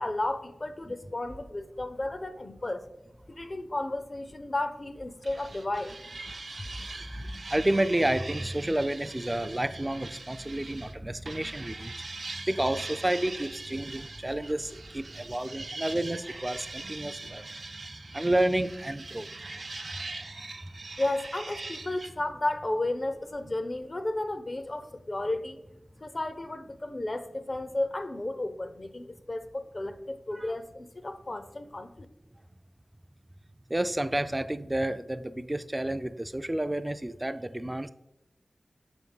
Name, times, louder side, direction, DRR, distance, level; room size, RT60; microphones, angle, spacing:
voice 1, 0.0-2.9 3.3-6.0 21.0-25.6 26.0-32.1, left 2 dB, 45° left, 0.5 m, -33 dB
sound 1, 5.2-10.9 11.3-22.1, right 3 dB, 70° right, 0.6 m, -42 dB
voice 2, 7.1-17.4 18.1-19.3 30.3-30.5 33.7-37.9, right 1 dB, 20° right, 0.4 m, -30 dB
6.4 x 3.5 x 5.4 m
wide cardioid pair, 55°, 0 cm